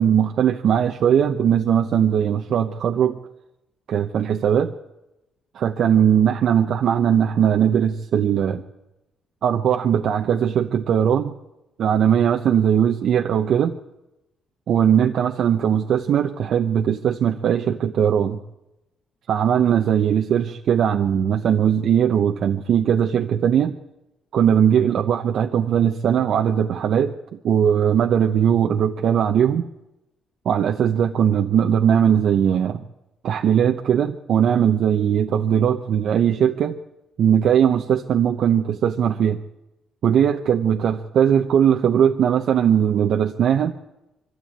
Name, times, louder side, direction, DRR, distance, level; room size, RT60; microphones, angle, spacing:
voice 1, 0.0-3.2 3.9-4.7 5.5-8.6 9.4-11.3 11.8-13.8 14.7-18.4 19.3-23.7 24.3-27.2 27.4-29.7 30.4-32.8 33.2-36.8 37.2-39.4 40.0-43.8, right 8 dB, 70° right, 4 dB, 0.9 m, -19 dB
23.5 x 13.0 x 8.8 m, 0.95 s
cardioid pair, 90°, 0 cm